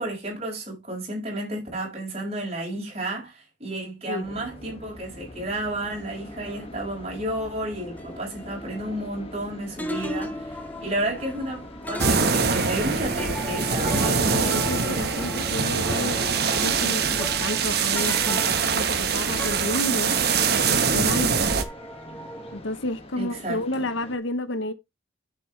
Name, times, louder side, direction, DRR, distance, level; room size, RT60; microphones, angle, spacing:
voice 1, 0.0-14.6 23.2-23.8, right 1 dB, 30° right, 5.6 m, -32 dB
sound 1, 4.2-24.2, left 1 dB, 30° left, 1.9 m, -44 dB
sound 2, 5.9-9.5 9.8-20.8 21.1-22.6, left 1 dB, 10° left, 1.4 m, -37 dB
sound 3, 12.0-21.6, right 5 dB, 55° right, 1.3 m, -24 dB
voice 2, 14.0-16.2 16.6-20.2 20.7-21.5 22.5-24.7, left 1 dB, 80° left, 1.0 m, -31 dB
10.5 x 7.5 x 3.3 m
head